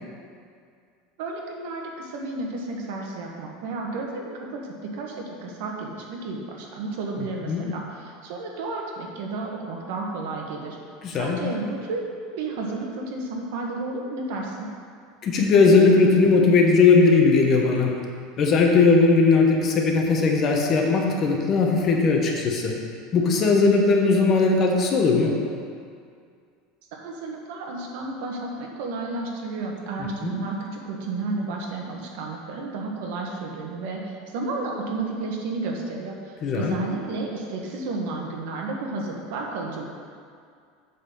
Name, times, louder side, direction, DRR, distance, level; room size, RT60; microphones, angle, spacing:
voice 1, 1.2-10.8 11.2-12.1 12.3-14.7 26.9-39.9, right 3 dB, 65° right, 0 dB, 1.4 m, -32 dB
voice 2, 7.2-7.7 11.0-11.4 15.2-18.0 18.4-22.7 23.1-25.5 30.0-30.4 36.4-36.8, left 4 dB, 30° left, 1 dB, 0.9 m, -19 dB
8.3 x 4.1 x 7.0 m, 2.2 s
supercardioid pair, 165°, 0 cm